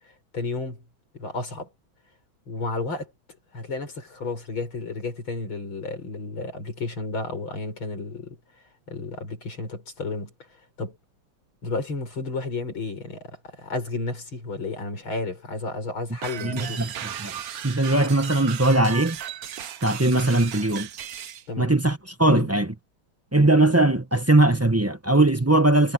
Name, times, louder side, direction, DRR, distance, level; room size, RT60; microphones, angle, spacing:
voice 1, 0.3-0.8 1.1-1.7 2.5-3.1 3.5-8.4 8.9-10.3 10.8-11.0 11.6-16.9 21.5-21.7 22.3-22.5, left 3 dB, 75° left, 6.5 m, -32 dB
sound 1, 16.2-21.4, right 9 dB, 55° right, 1.1 m, -36 dB
voice 2, 16.4-17.3 17.6-19.2 19.8-20.9 21.6-22.7 23.3-25.9, right 2 dB, 15° right, 0.5 m, -20 dB
omnidirectional pair, 2.3 m